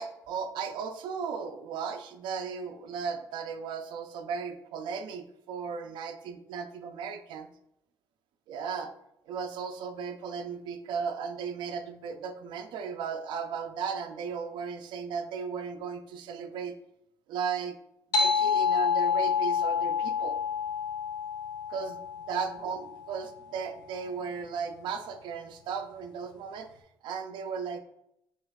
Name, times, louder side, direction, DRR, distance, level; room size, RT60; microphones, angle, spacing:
voice 1, 0.0-7.5 8.5-8.9 9.3-16.7 17.3-17.8 18.2-20.4 21.7-26.7 27.0-27.8, right 6 dB, 75° right, 7 dB, 0.4 m, -36 dB
sound 1, 18.1-23.1, left 6 dB, 65° left, 0.5 m, -28 dB
6.3 x 2.4 x 2.3 m, 0.80 s
cardioid pair, 150°, 8 cm